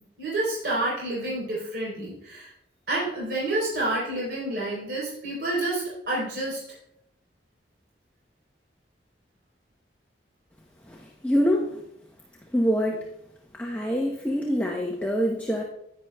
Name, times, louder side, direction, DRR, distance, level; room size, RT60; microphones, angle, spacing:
voice 1, 0.2-2.5 2.9-6.6, right 2 dB, 60° right, -6 dB, 3.6 m, -29 dB
voice 2, 10.9-11.8 12.5-13.1 13.5-15.6, equal, 10° left, -1 dB, 0.7 m, -25 dB
10.5 x 9.7 x 2.2 m, 0.77 s
head